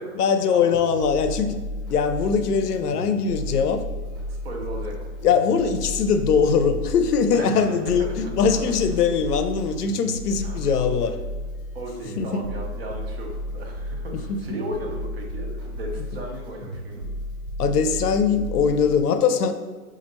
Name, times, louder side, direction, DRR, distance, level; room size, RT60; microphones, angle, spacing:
voice 1, 0.2-1.6 1.9-3.8 5.2-11.2 12.2-12.5 14.1-14.4 17.6-19.5, left 6 dB, 80° left, 10 dB, 0.5 m, -21 dB
sound 1, 0.7-19.0, equal, 60° right, 1.4 m, -33 dB
voice 2, 4.3-5.0 7.3-7.7 8.1-8.7 10.4-10.8 11.7-17.1, right 1 dB, 40° right, 0 dB, 0.6 m, -36 dB
4.2 x 2.5 x 2.9 m, 1.4 s
hypercardioid pair, 170°, 47 cm